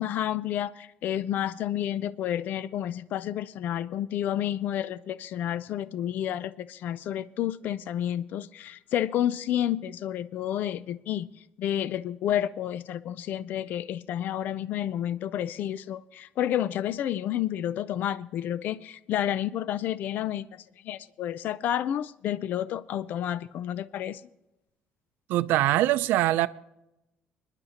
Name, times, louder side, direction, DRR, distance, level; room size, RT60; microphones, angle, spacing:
voice 1, 0.0-11.3 11.6-24.2, left 11 dB, 60° left, 0.4 m, -30 dB
voice 2, 25.3-26.5, right 15 dB, 90° right, 0.5 m, -23 dB
25.0 x 10.5 x 2.9 m
cardioid pair, 145°, 3 cm